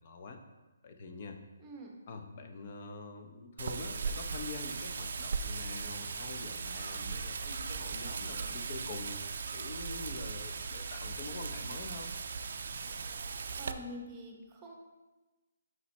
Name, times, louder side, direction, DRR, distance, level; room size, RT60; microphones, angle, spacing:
voice 1, 0.0-0.4 0.8-1.4 2.1-9.2 9.5-12.1, left 3 dB, 40° left, 5 dB, 0.6 m, -45 dB
voice 2, 1.6-1.9 13.3-14.8, equal, 15° right, 0 dB, 0.9 m, -46 dB
Wind, 3.6-13.7, right 5 dB, 60° right, 0.4 m, -38 dB
5.6 x 5.3 x 3.2 m, 1.2 s
hypercardioid pair, 165°, 0 cm